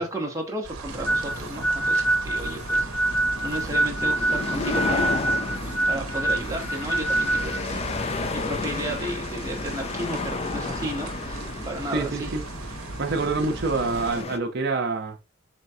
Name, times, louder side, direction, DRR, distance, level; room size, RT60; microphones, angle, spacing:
voice 1, 0.0-3.2 3.4-5.2 5.9-8.1 8.3-12.3, right 1 dB, 15° right, 0.8 m, -33 dB
sound 1, 0.6-14.2, right 3 dB, 85° right, 0.7 m, -37 dB
sound 2, 0.9-14.4, left 4 dB, 30° left, 0.3 m, -33 dB
sound 3, 1.1-7.6, right 2 dB, 85° left, 2.1 m, -25 dB
voice 2, 11.9-12.4 13.0-15.2, right 3 dB, 50° right, 0.6 m, -26 dB
4.4 x 3.4 x 2.7 m
head